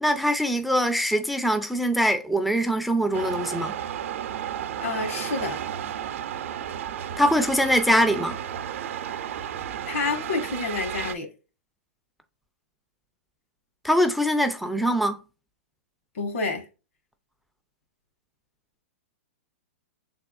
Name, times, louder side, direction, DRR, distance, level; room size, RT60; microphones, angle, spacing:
voice 1, 0.0-3.7 7.2-8.4 13.8-15.2, equal, ahead, 0.4 m, -23 dB
sound 1, 3.1-11.1, right 10 dB, 65° right, 0.6 m, -33 dB
voice 2, 4.8-5.6 9.9-11.3 16.1-16.6, left 3 dB, 75° left, 1.4 m, -28 dB
6.1 x 3.6 x 2.4 m
hypercardioid pair, 135°, 7 cm